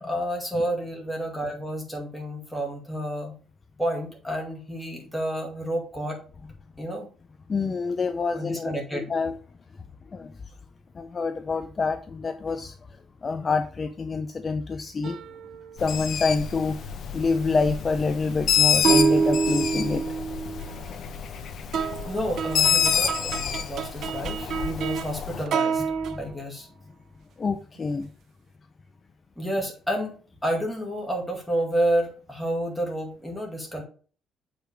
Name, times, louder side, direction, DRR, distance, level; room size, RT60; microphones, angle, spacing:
voice 1, 0.0-3.4 3.8-6.2 6.8-7.1 8.3-9.1 22.1-25.8 26.2-26.7 29.4-33.8, right 1 dB, ahead, -1 dB, 2.0 m, -30 dB
voice 2, 7.5-9.3 10.1-10.3 11.0-12.8 13.2-15.2 15.8-16.8 17.1-20.0 26.2-26.3 27.4-28.1, left 4 dB, 25° left, 8 dB, 0.4 m, -27 dB
sound 1, 15.0-15.7 18.8-20.8 21.7-25.1 25.5-26.2, right 5 dB, 55° right, 0.6 m, -26 dB
Bird, 15.8-25.4, left 8 dB, 50° left, 0.8 m, -28 dB
7.7 x 5.0 x 3.4 m, 0.40 s
cardioid pair, 150°, 0 cm